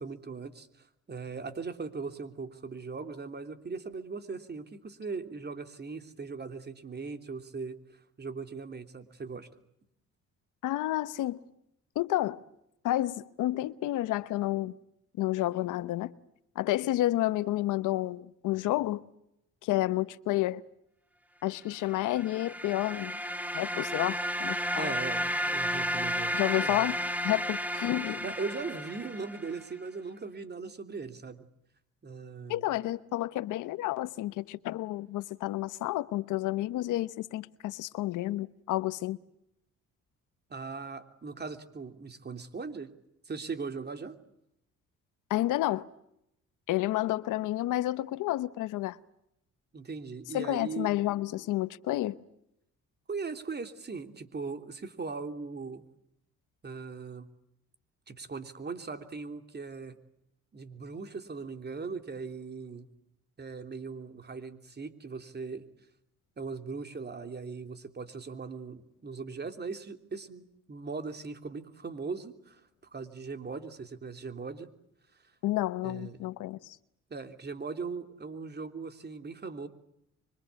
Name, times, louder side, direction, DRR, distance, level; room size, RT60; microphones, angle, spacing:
voice 1, 0.0-9.5 24.8-26.8 28.2-31.5 32.0-32.7 40.5-42.9 43.2-44.2 49.7-50.9 53.1-55.8 56.6-57.3 58.1-60.0 60.5-62.9 63.4-65.7 66.4-72.6 72.9-74.7 75.8-76.3 77.1-79.7, right 4 dB, 35° right, 3.2 m, -39 dB
voice 2, 10.6-11.4 11.9-12.4 12.8-14.8 15.2-16.1 16.5-19.0 19.6-20.6 21.4-23.2 23.5-24.9 26.3-27.0 27.2-28.2 32.5-39.2 45.3-45.9 46.7-49.0 50.3-52.2 75.4-76.8, left 15 dB, 90° left, 1.0 m, -30 dB
sound 1, 21.9-29.6, equal, 5° right, 2.4 m, -33 dB
25.0 x 24.0 x 8.4 m
cardioid pair, 90°, 30 cm